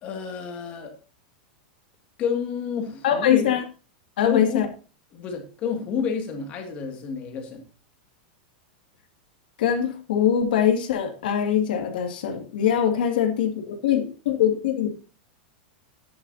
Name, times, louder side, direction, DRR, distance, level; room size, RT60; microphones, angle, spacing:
voice 1, 0.0-1.0 2.2-3.5 4.2-4.7 5.1-7.6, left 6 dB, 25° left, 4 dB, 2.2 m, -29 dB
voice 2, 3.0-3.6 4.2-4.7 9.6-14.9, left 9 dB, 70° left, 5 dB, 2.3 m, -22 dB
13.0 x 10.5 x 2.8 m, 0.35 s
supercardioid pair, 175°, 5 cm